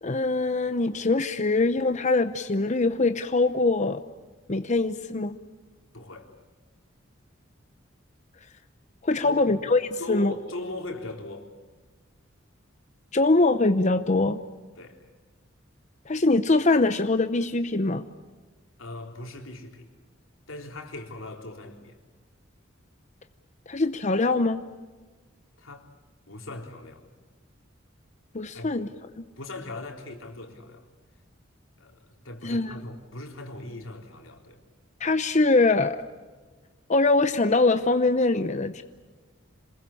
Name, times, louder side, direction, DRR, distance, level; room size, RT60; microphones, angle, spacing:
voice 1, 0.0-4.0 4.5-5.4 9.0-10.3 13.1-14.4 16.1-18.1 23.7-24.6 28.3-28.9 32.4-32.8 35.0-36.0 36.9-38.8, left 3 dB, 35° left, 10 dB, 0.8 m, -23 dB
voice 2, 5.9-6.3 9.2-9.5 10.0-11.5 14.8-15.1 18.8-19.9 20.5-22.0 25.6-25.9 26.3-27.0 28.5-28.7 29.4-30.9 31.8-34.6, left 2 dB, 90° left, 3 dB, 3.9 m, -39 dB
27.0 x 21.0 x 8.5 m, 1.3 s
head